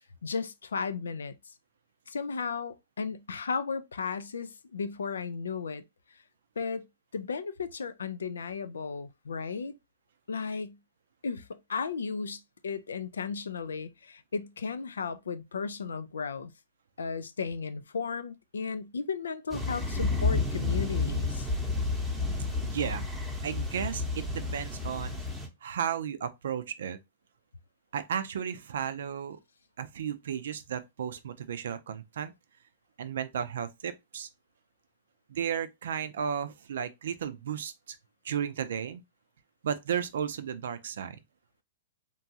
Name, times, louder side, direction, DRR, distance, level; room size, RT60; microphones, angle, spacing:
voice 1, 0.2-1.5 2.1-5.8 6.6-6.9 7.1-9.7 10.3-10.8 11.2-16.5 17.0-21.5, left 5 dB, 90° left, 0.3 m, -35 dB
sound 1, 19.5-25.5, left 3 dB, 5° right, 0.8 m, -31 dB
voice 2, 22.6-23.1 23.4-25.2 25.6-27.0 27.9-29.4 29.8-32.3 33.0-34.3 35.3-38.0 38.2-39.0 39.6-41.2, right 8 dB, 75° right, 0.4 m, -34 dB
2.9 x 2.3 x 2.7 m
hypercardioid pair, 130°, 0 cm